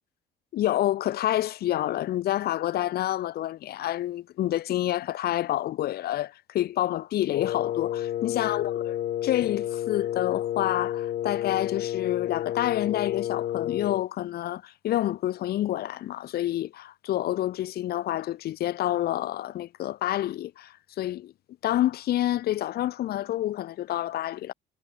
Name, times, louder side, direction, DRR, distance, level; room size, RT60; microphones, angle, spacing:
voice 1, 0.5-8.9 9.2-21.3 21.6-24.5, left 13 dB, 65° left, 2.4 m, -28 dB
Wind instrument woodwind instrument, 7.3-14.1, left 12 dB, 50° left, 0.6 m, -30 dB
cardioid pair, 110°, 17 cm